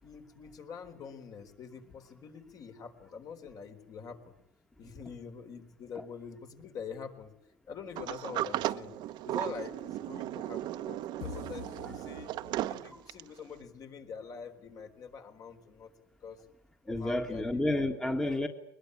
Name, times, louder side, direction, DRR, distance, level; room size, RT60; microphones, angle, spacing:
voice 1, 0.0-4.3 4.8-7.3 7.7-8.9 9.2-12.3 12.7-15.9 16.2-16.4 16.8-17.6, left 6 dB, 45° left, 6 dB, 4.1 m, -45 dB
Sliding door, 8.0-13.4, right 13 dB, 60° right, 1.0 m, -36 dB
sound 1, 11.2-13.0, left 11 dB, 85° left, 1.0 m, -46 dB
voice 2, 16.9-18.5, left 1 dB, 5° left, 5 dB, 1.7 m, -30 dB
22.0 x 21.0 x 9.9 m, 0.78 s
cardioid pair, 125°, 8 cm